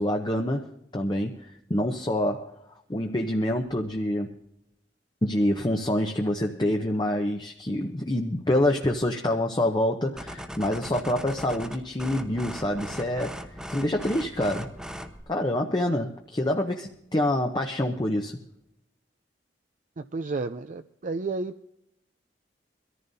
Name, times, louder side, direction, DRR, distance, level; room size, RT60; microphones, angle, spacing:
voice 1, 0.0-2.6 2.9-4.4 5.2-14.7 15.3-18.4, left 1 dB, 25° left, 3 dB, 0.8 m, -26 dB
sound 1, 10.2-15.2, equal, 5° right, 0.9 m, -39 dB
voice 2, 20.0-21.5, right 3 dB, 45° right, 8 dB, 0.4 m, -31 dB
23.0 x 14.0 x 2.7 m, 0.82 s
head